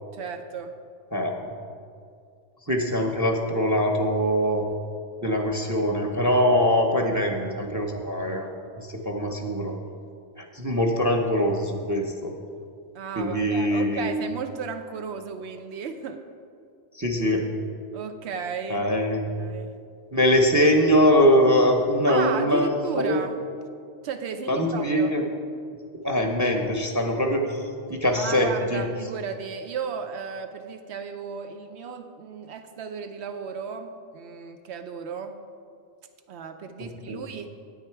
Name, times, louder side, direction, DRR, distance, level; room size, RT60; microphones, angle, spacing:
voice 1, 0.1-0.7 12.9-16.2 17.9-18.9 19.4-19.7 22.1-23.4 24.0-25.1 28.2-35.4 36.3-37.5, right 6 dB, 85° right, 8 dB, 0.9 m, -34 dB
voice 2, 1.1-1.5 2.7-4.6 5.2-8.5 8.8-9.8 10.4-12.3 13.2-14.1 16.9-17.5 18.7-19.3 20.1-23.2 24.5-25.2 26.0-27.6 27.9-28.8 36.8-37.2, equal, 20° right, 3 dB, 0.7 m, -23 dB
9.3 x 8.7 x 4.6 m, 2.3 s
omnidirectional pair, 1.1 m